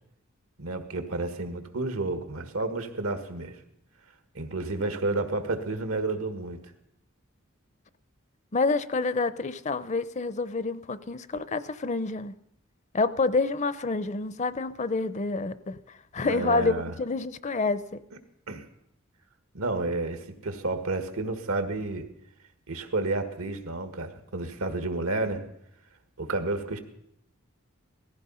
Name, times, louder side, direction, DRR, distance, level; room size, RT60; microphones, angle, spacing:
voice 1, 0.6-3.6 4.3-6.7 16.2-16.9 18.5-18.6 19.5-22.1 22.7-25.4 26.2-26.8, right 2 dB, 85° right, 8 dB, 1.7 m, -31 dB
voice 2, 8.5-12.3 12.9-15.8 16.1-18.0, left 3 dB, 35° left, 15 dB, 0.5 m, -28 dB
18.0 x 14.5 x 5.6 m, 0.80 s
head